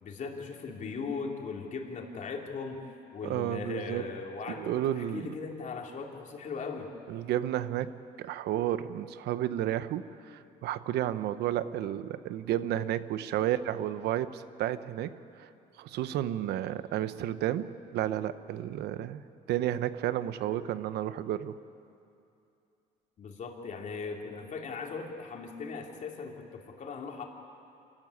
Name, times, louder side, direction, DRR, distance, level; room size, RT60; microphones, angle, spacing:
voice 1, 0.0-2.9 3.1-6.9 23.2-27.2, left 4 dB, 45° left, 1 dB, 3.2 m, -38 dB
voice 2, 3.2-4.0 4.5-5.3 7.1-15.5 15.8-19.2 19.5-21.6, right 12 dB, 75° right, 13 dB, 0.9 m, -32 dB
26.5 x 15.0 x 9.8 m, 2.7 s
cardioid pair, 110°, 17 cm